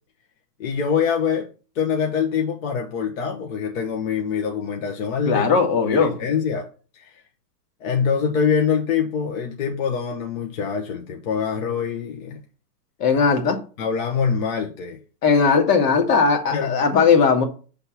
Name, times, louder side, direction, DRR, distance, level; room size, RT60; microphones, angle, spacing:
voice 1, 0.6-1.5 1.7-5.5 5.9-6.7 6.9-7.2 7.8-12.4 13.8-15.0 16.5-16.8, left 6 dB, 55° left, 1.1 m, -24 dB
voice 2, 5.3-6.1 13.0-13.6 15.2-17.4, left 5 dB, 70° left, 1.9 m, -18 dB
6.6 x 3.6 x 5.7 m
hypercardioid pair, 145°, 48 cm